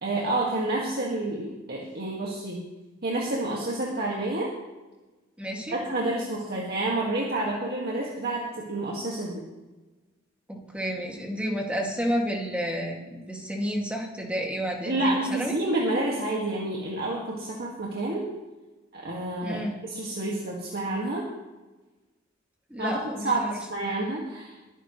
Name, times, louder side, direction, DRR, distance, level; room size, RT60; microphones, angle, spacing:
voice 1, 0.0-2.6 3.0-4.5 5.7-9.4 14.9-18.3 18.9-19.6 19.9-21.2 22.8-24.5, right 2 dB, 55° right, -3 dB, 2.0 m, -29 dB
voice 2, 5.4-5.8 10.5-15.6 19.4-19.8 22.7-23.6, equal, 5° right, -1 dB, 2.2 m, -31 dB
21.5 x 10.0 x 3.2 m, 1.2 s
head